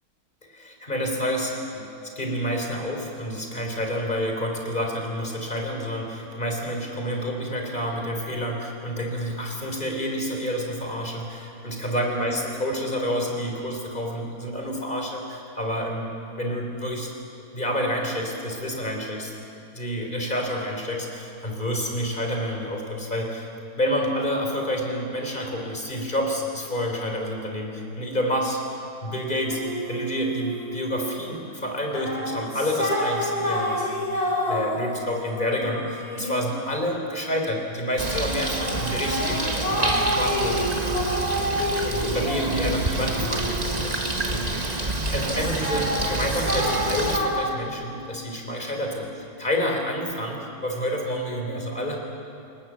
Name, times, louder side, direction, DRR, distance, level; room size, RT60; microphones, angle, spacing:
voice 1, 0.5-17.2 17.5-19.3 19.7-23.5 23.8-28.6 29.0-29.6 29.9-33.8 34.2-41.0 41.8-43.9 44.3-44.5 45.1-49.1 49.4-52.0, equal, 30° left, 1 dB, 3.9 m, -29 dB
sound 1, 29.4-31.1 31.8-37.4 38.0-44.9 45.2-47.3, equal, 70° left, 5.9 m, -29 dB
Bird, 38.0-47.2, right 2 dB, 25° right, 1.6 m, -28 dB
28.5 x 18.5 x 7.5 m, 2.7 s
omnidirectional pair, 1.7 m